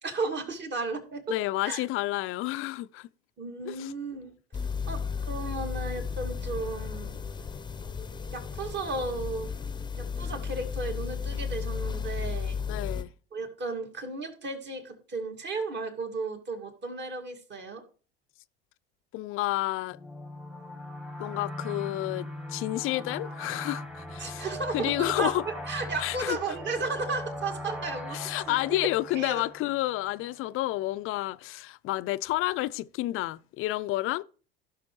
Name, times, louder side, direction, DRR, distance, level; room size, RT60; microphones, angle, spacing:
voice 1, 0.0-1.4 1.6-1.8 3.4-4.3 4.9-7.2 8.3-9.5 10.0-12.6 13.3-17.8 24.2-28.8 29.1-29.5, right 3 dB, 35° right, 2.3 m, -34 dB
voice 2, 1.3-3.1 3.7-3.9 12.7-13.1 19.1-20.0 21.2-24.5 24.7-25.4 26.0-26.4 28.1-34.2, left 17 dB, 45° left, 0.5 m, -30 dB
sound 1, 4.5-13.0, left 6 dB, 15° left, 0.8 m, -34 dB
sound 2, 19.9-30.3, equal, ahead, 1.2 m, -40 dB
15.5 x 6.1 x 3.2 m
hypercardioid pair, 80°, 31 cm